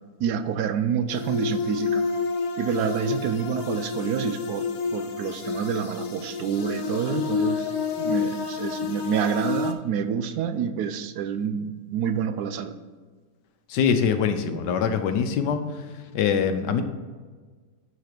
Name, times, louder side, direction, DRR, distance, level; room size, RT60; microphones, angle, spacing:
voice 1, 0.2-2.0 2.6-7.7 8.0-12.8, right 8 dB, 75° right, 10 dB, 1.1 m, -28 dB
sound 1, 1.1-9.7, left 5 dB, 65° left, 1.2 m, -29 dB
voice 2, 13.7-15.6 16.1-16.8, left 7 dB, 90° left, 8 dB, 1.4 m, -23 dB
9.6 x 4.1 x 5.2 m, 1.4 s
omnidirectional pair, 1.8 m